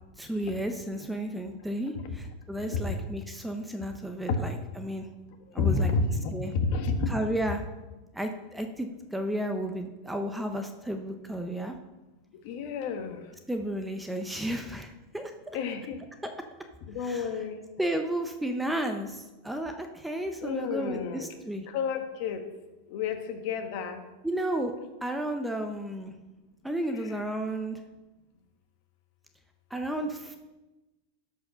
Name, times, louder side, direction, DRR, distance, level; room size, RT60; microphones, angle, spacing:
voice 1, 0.2-5.1 5.5-5.9 6.3-6.5 7.1-7.7 8.1-11.8 13.5-15.3 16.2-16.3 17.0-17.3 17.8-21.7 24.2-24.7 25.0-26.1 26.6-27.8 29.7-30.4, right 1 dB, 5° right, 5 dB, 0.5 m, -33 dB
voice 2, 5.6-6.1 6.5-7.1 12.4-13.2 15.5-16.0 16.9-17.7 20.4-21.3 21.7-22.4 22.9-24.0, left 5 dB, 50° left, 5 dB, 1.3 m, -30 dB
13.0 x 4.8 x 5.7 m, 1.1 s
supercardioid pair, 155°, 0 cm